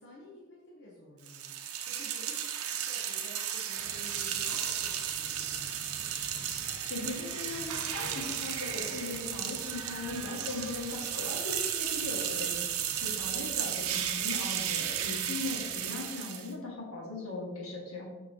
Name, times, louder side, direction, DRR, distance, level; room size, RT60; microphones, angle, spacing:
voice 1, 0.0-5.7 12.4-12.8, left 1 dB, 50° left, -4 dB, 1.0 m, -52 dB
sound 1, 1.3-16.5, right 9 dB, 85° right, 0.7 m, -34 dB
Thunder, 3.8-15.9, equal, 20° right, 1.6 m, -52 dB
voice 2, 6.8-18.1, left 2 dB, 80° left, -3 dB, 2.0 m, -39 dB
7.2 x 6.0 x 2.9 m, 1.2 s
head